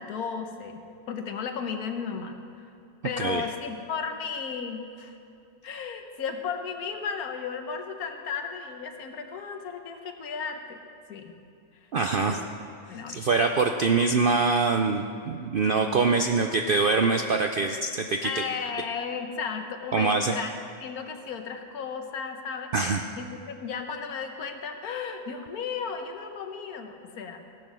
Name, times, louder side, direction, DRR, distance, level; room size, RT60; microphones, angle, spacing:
voice 1, 0.0-2.4 3.0-5.2 5.6-10.8 11.1-11.3 11.8-11.9 12.2-12.4 12.9-13.2 18.2-20.5 20.8-22.7 23.2-27.4, left 6 dB, 85° left, 5 dB, 1.5 m, -34 dB
voice 2, 11.9-12.4 13.1-18.4 19.9-20.3 22.7-23.0, right 4 dB, 65° right, 4 dB, 0.5 m, -24 dB
16.5 x 7.6 x 6.2 m, 2.5 s
omnidirectional pair, 1.5 m